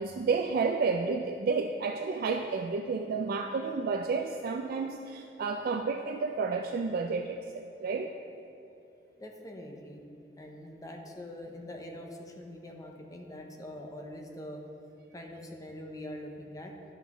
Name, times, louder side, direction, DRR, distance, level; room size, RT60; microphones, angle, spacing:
voice 1, 0.0-8.1, right 4 dB, 55° right, 4 dB, 0.3 m, -31 dB
voice 2, 9.2-10.0 10.4-14.6 15.1-16.8, left 1 dB, 20° left, 2 dB, 0.7 m, -44 dB
10.5 x 5.9 x 3.0 m, 2.8 s
head